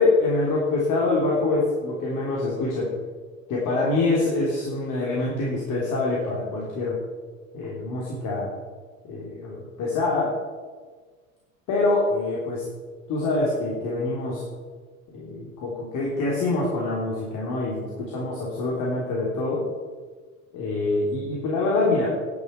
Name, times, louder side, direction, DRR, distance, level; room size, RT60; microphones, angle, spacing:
voice 1, 0.0-2.9 3.5-7.0 7.5-8.5 9.1-10.3 11.7-12.7 13.1-14.4 15.1-19.6 20.5-22.1, left 2 dB, 50° left, -4 dB, 3.4 m, -25 dB
10.5 x 8.1 x 7.7 m, 1.5 s
figure-of-eight pair, 75°, 41 cm